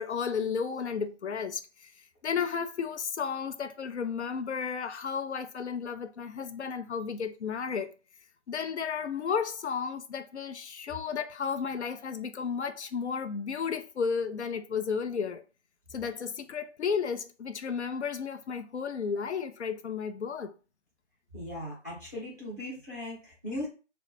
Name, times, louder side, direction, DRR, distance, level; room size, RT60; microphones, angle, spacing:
voice 1, 0.0-1.9 2.2-7.9 8.5-15.4 15.9-20.5, left 6 dB, 65° left, 0.5 m, -33 dB
voice 2, 21.3-23.7, left 1 dB, 15° left, 0.7 m, -38 dB
2.2 x 2.0 x 3.1 m
figure-of-eight pair, 160°, 36 cm